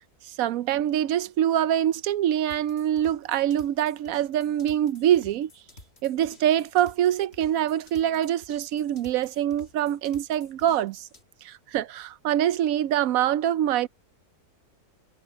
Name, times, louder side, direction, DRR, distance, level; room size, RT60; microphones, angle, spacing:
voice 1, 0.3-5.5 6.0-11.1 11.4-13.9, right 11 dB, 70° right, 1.0 m, -24 dB
sound 1, 2.5-11.2, left 2 dB, 40° left, 3.1 m, -51 dB
omnidirectional pair, 1.6 m